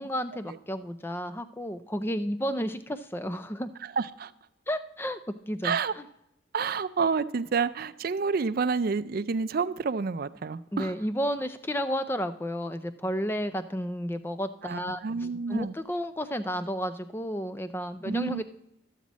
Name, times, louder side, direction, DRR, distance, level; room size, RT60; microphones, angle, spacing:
voice 1, 0.0-3.7 4.7-5.2 5.5-6.0 10.7-15.0 15.5-18.4, equal, 10° left, 11 dB, 0.4 m, -32 dB
voice 2, 4.0-4.3 5.6-5.9 6.5-10.9 14.6-15.8 18.0-18.4, right 5 dB, 50° right, 13 dB, 0.4 m, -29 dB
13.0 x 7.3 x 4.1 m, 0.81 s
head